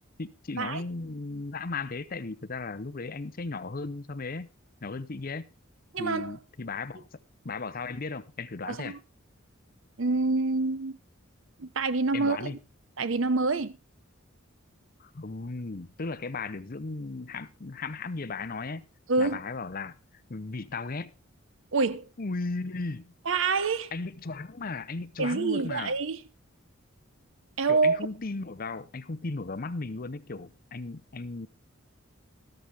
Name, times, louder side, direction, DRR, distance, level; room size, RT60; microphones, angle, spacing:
voice 1, 0.2-4.5 4.8-5.4 6.0-7.1 7.4-9.0 12.1-12.6 15.0-18.9 19.2-20.0 20.3-21.1 22.2-23.1 23.9-25.9 27.7-31.5, left 3 dB, 45° left, 0.8 m, -36 dB
voice 2, 5.9-6.4 8.6-9.0 10.0-11.0 11.6-12.5 13.0-13.8 19.1-19.4 21.7-22.1 23.3-23.9 25.2-26.2 27.6-28.0, right 3 dB, 65° right, 0.8 m, -26 dB
13.0 x 13.0 x 3.5 m
head